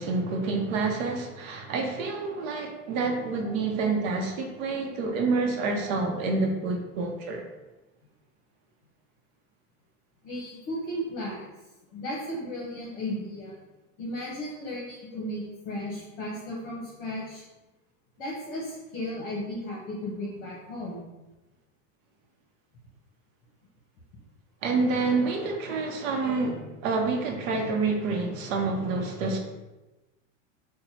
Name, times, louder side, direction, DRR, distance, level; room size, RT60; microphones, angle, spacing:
voice 1, 0.0-7.4 24.6-29.4, right 3 dB, 75° right, 3 dB, 0.7 m, -28 dB
voice 2, 10.2-11.4 11.9-13.6 14.0-17.4 18.2-21.1, left 1 dB, 50° left, -5 dB, 0.8 m, -35 dB
2.9 x 2.2 x 4.1 m, 1.1 s
supercardioid pair, 175°, 39 cm